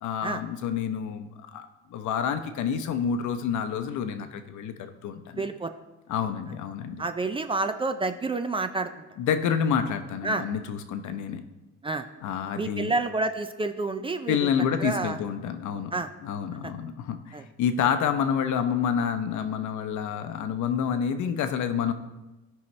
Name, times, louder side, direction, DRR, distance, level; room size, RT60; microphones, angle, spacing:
voice 1, 0.0-5.4 6.1-7.0 9.2-11.4 12.2-12.9 14.3-15.9 16.2-21.9, left 7 dB, 80° left, 8 dB, 0.8 m, -28 dB
voice 2, 5.3-5.7 7.0-8.9 10.2-10.4 11.8-12.1 12.6-14.5 14.8-15.2 15.9-16.1 16.6-16.7 17.3-17.4, right 3 dB, 20° right, 8 dB, 0.4 m, -29 dB
16.5 x 5.6 x 3.2 m, 1.0 s
cardioid pair, 155°, 29 cm